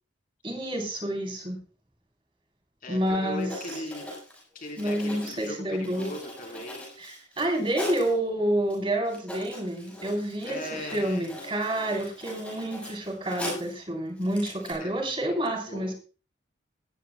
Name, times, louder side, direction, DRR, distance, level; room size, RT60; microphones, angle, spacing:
voice 1, 0.4-1.6 2.9-3.5 4.8-6.1 7.0-15.9, right 1 dB, 30° right, 2 dB, 3.6 m, -29 dB
voice 2, 2.8-4.1 4.5-6.9 10.5-11.3 14.8-15.9, equal, 45° left, 3 dB, 3.7 m, -39 dB
Writing, 3.1-3.2 3.4-8.1 8.7-8.8 9.0-13.8 14.2-14.7, left 1 dB, 5° left, 7.3 m, -41 dB
18.5 x 15.0 x 2.2 m, 0.37 s
head